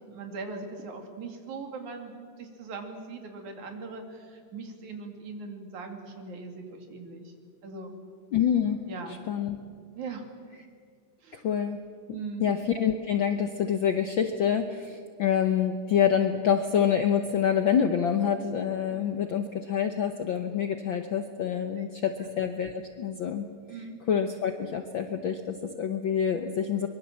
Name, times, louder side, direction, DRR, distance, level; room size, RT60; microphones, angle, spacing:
voice 1, 0.1-7.3 7.6-7.9 8.9-9.2 10.0-10.3 11.2-11.4 12.1-12.5 18.9-19.3 21.8-22.3 23.7-24.0, right 4 dB, 80° right, 4 dB, 3.8 m, -40 dB
voice 2, 8.3-8.8 9.3-9.6 11.3-11.8 12.4-23.5 24.1-26.9, left 8 dB, 70° left, 7 dB, 1.2 m, -26 dB
24.0 x 23.0 x 7.4 m, 2.1 s
omnidirectional pair, 3.4 m